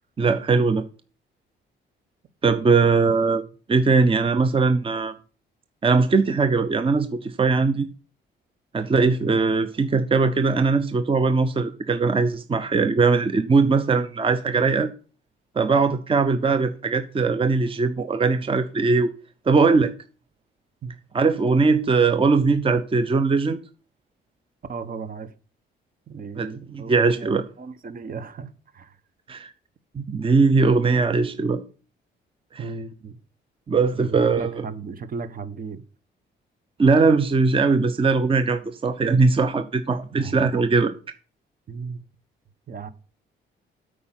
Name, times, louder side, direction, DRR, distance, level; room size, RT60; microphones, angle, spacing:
voice 1, 0.2-0.8 2.4-3.4 3.7-5.1 5.8-7.9 8.7-14.9 15.6-19.1 19.5-19.9 21.1-23.6 26.4-26.5 26.7-27.4 29.3-29.5 29.9-31.6 32.5-32.6 33.7-34.6 36.8-40.9, right 4 dB, 25° right, 0.8 m, -20 dB
voice 2, 24.7-25.3 26.1-29.0 32.6-33.2 33.9-35.8 40.1-40.3 41.7-42.0 42.7-42.9, right 5 dB, 45° right, 1.0 m, -35 dB
8.5 x 5.0 x 7.4 m
cardioid pair, 90°, 20 cm